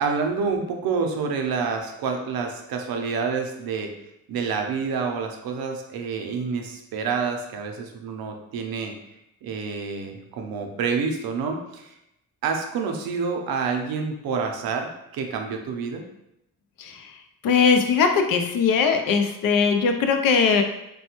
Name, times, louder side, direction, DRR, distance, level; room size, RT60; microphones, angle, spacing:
voice 1, 0.0-3.9 4.3-8.9 9.4-12.0 12.4-16.0, right 5 dB, 85° right, 4 dB, 0.6 m, -28 dB
voice 2, 17.4-20.6, left 5 dB, 75° left, 5 dB, 0.5 m, -20 dB
3.1 x 2.2 x 2.9 m, 0.84 s
wide cardioid pair, 145°, 35 cm